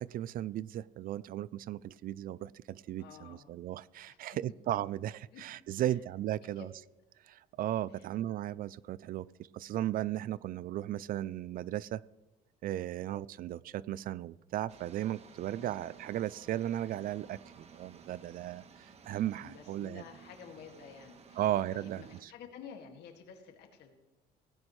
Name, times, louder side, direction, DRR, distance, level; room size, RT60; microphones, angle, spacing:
voice 1, 0.0-6.7 7.3-9.3 9.5-12.0 12.6-20.0 21.4-22.3, right 13 dB, 55° right, 0.4 m, -36 dB
voice 2, 3.0-3.5 4.1-4.4 5.3-5.4 5.8-6.0 6.4-6.6 8.0-8.1 15.6-15.7 19.4-23.9, left 7 dB, 75° left, 2.1 m, -51 dB
sound 1, 14.7-22.2, right 5 dB, 40° right, 1.4 m, -56 dB
17.0 x 16.0 x 3.2 m
cardioid pair, 110°, 17 cm